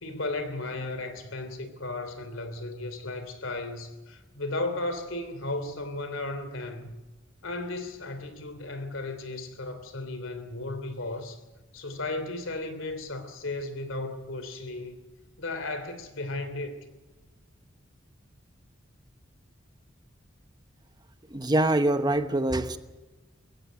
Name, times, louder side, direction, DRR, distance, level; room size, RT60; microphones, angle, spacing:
voice 1, 0.0-6.9 7.4-11.4 11.7-15.0 15.4-16.7, left 2 dB, 75° left, 3.0 m, -35 dB
voice 2, 21.3-22.8, right 1 dB, 20° right, 1.0 m, -24 dB
22.5 x 15.5 x 9.0 m
head